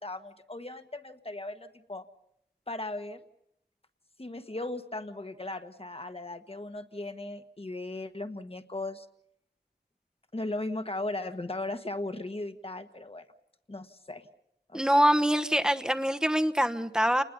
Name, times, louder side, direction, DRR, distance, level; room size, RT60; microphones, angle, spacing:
voice 1, 0.0-2.1 2.7-3.2 4.2-9.1 10.3-13.3 13.7-14.3 14.7-15.0, left 2 dB, 35° left, 8 dB, 1.5 m, -37 dB
voice 2, 14.7-17.2, equal, 5° right, 8 dB, 1.1 m, -24 dB
29.5 x 20.5 x 5.4 m, 0.76 s
wide cardioid pair, 65°, 17 cm